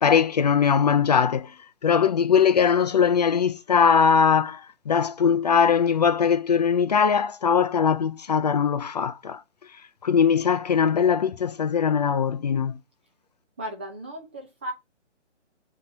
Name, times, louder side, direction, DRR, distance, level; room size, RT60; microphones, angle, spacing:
voice 1, 0.0-1.5 1.8-9.4 10.0-12.8, left 7 dB, 35° left, 0.6 m, -21 dB
voice 2, 13.6-14.7, equal, 10° right, 0.5 m, -35 dB
7.4 x 4.4 x 6.5 m
figure-of-eight pair, 145°, 36 cm